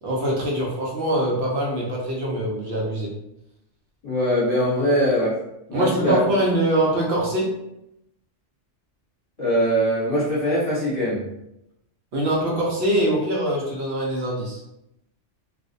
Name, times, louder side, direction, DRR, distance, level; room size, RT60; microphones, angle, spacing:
voice 1, 0.0-3.1 5.7-7.5 12.1-14.6, right 1 dB, 65° right, -3 dB, 0.8 m, -23 dB
voice 2, 4.0-5.4 5.7-6.2 9.4-11.2, equal, 30° left, -10 dB, 1.0 m, -21 dB
2.4 x 2.0 x 2.5 m, 0.83 s
omnidirectional pair, 1.2 m